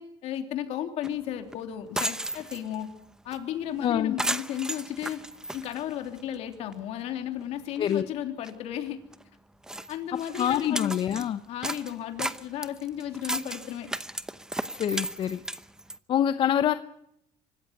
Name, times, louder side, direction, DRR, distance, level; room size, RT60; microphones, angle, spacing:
voice 1, 0.0-2.9 3.2-5.2 5.5-9.0 9.9-10.9 11.5-13.9, left 10 dB, 65° left, 5 dB, 3.2 m, -34 dB
sound 1, 1.0-1.1 1.5-1.6 1.9-2.8 3.3-3.4 3.7-3.9 4.2-6.3 6.7-6.8 7.4-7.5 7.8-8.0 8.4-8.5 9.1-9.2 9.6-11.3 11.6-16.0, right 1 dB, 5° right, 0.9 m, -34 dB
voice 2, 3.8-4.1 7.8-8.1 10.4-11.4 14.8-15.4 16.1-16.7, left 10 dB, 45° left, 11 dB, 0.8 m, -25 dB
25.0 x 13.5 x 9.8 m, 0.79 s
cardioid pair, 125°, 12 cm